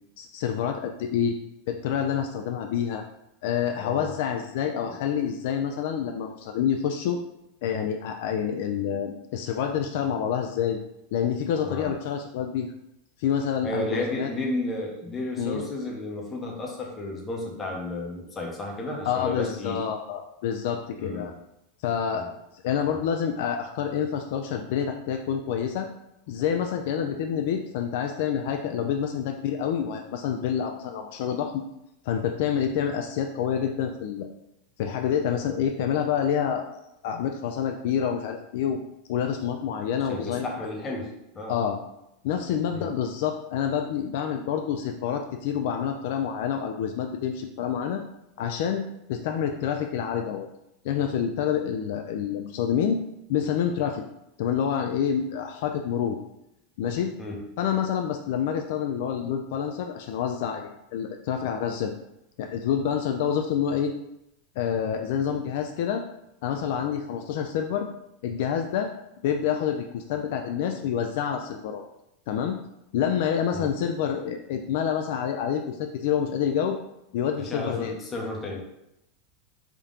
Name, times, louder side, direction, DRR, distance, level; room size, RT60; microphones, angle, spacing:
voice 1, 0.2-1.4 1.7-3.0 3.4-7.2 7.6-10.8 11.1-12.7 13.2-14.3 15.4-15.6 19.0-21.3 21.8-22.2 22.6-25.9 26.3-31.6 32.0-34.3 34.8-36.7 37.0-38.8 39.1-40.5 41.5-41.8 42.2-48.0 48.4-48.8 49.1-50.5 50.8-53.0 53.3-54.0 54.4-56.2 56.8-57.1 57.6-61.9 62.4-63.9 64.6-66.0 66.4-67.9 68.2-68.9 69.2-71.8 72.3-72.6 72.9-76.8 77.1-77.9, left 8 dB, 55° left, 4 dB, 0.3 m, -27 dB
voice 2, 3.8-4.2 4.8-4.9 11.6-11.9 13.6-19.8 21.0-21.3 22.1-22.3 40.1-41.5 42.7-42.9 57.2-57.4 73.5-73.7 77.4-78.6, left 2 dB, 15° left, -1 dB, 0.7 m, -33 dB
3.5 x 2.8 x 3.6 m, 0.84 s
supercardioid pair, 170°, 0 cm